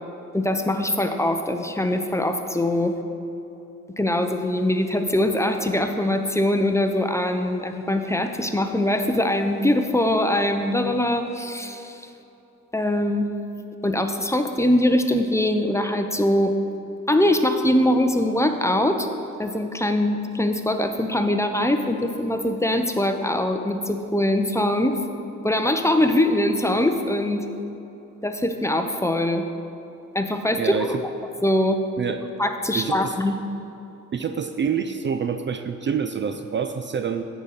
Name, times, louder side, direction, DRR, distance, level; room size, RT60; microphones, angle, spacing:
voice 1, 0.3-2.9 4.0-12.0 12.7-13.3 13.8-16.5 17.1-19.1 19.4-24.9 25.4-27.4 28.2-29.4 30.1-31.0 31.4-31.8 32.4-33.4, left 1 dB, 10° left, 6 dB, 0.6 m, -22 dB
voice 2, 30.6-31.0 32.0-32.2 32.7-33.2 34.1-37.2, right 7 dB, 35° right, 8 dB, 0.4 m, -27 dB
9.4 x 4.0 x 6.5 m, 2.9 s
cardioid pair, 65°, 31 cm